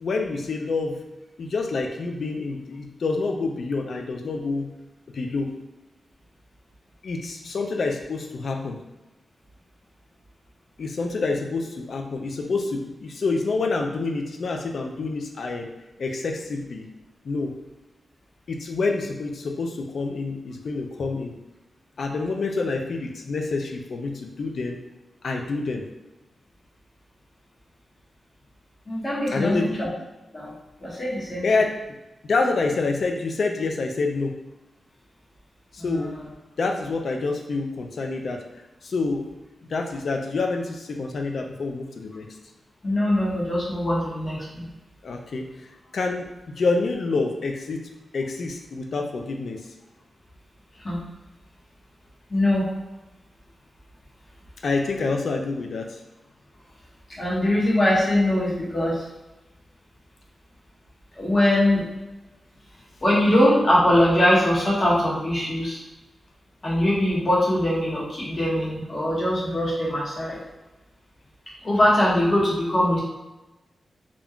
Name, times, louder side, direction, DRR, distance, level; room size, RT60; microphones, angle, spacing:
voice 1, 0.0-1.0 1.4-4.7 5.1-5.5 7.0-8.8 10.8-15.7 16.0-16.9 17.2-17.5 18.5-21.4 22.0-24.8 25.2-25.8 29.3-29.8 31.4-31.8 32.2-34.4 35.7-36.2 36.6-38.4 38.8-39.3 39.7-42.3 45.0-45.5 45.9-47.8 48.1-49.6 54.6-56.0, left 3 dB, 70° left, 3 dB, 0.4 m, -27 dB
voice 2, 28.9-29.9 30.3-30.5 30.8-31.4 35.8-36.1 42.8-44.7 50.8-51.0 52.3-52.7 57.2-59.0 61.2-61.8 63.0-65.8 66.6-70.4 71.6-73.0, left 1 dB, 35° left, -6 dB, 1.1 m, -22 dB
2.4 x 2.2 x 3.5 m, 1.0 s
wide cardioid pair, 95°, 0 cm